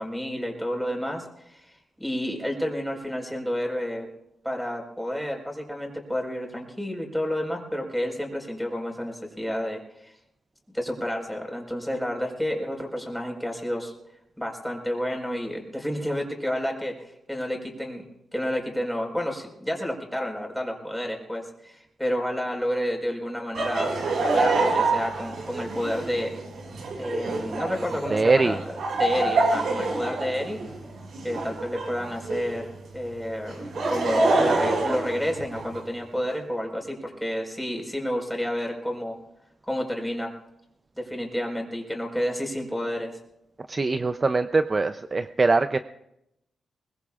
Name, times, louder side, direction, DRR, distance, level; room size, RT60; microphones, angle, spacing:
voice 1, 0.0-4.1 4.4-10.1 10.7-13.9 14.4-16.9 17.3-18.0 18.3-26.3 27.0-30.6 31.2-32.7 32.9-39.1 39.7-40.3 41.0-43.1, equal, ahead, 1 dB, 4.6 m, -30 dB
Laughter, 23.5-32.6 33.5-35.8, right 3 dB, 80° right, 5.3 m, -26 dB
voice 2, 28.1-28.6 43.7-45.8, right 3 dB, 30° right, 10 dB, 0.5 m, -22 dB
22.5 x 20.5 x 2.4 m, 0.82 s
cardioid pair, 100°, 0 cm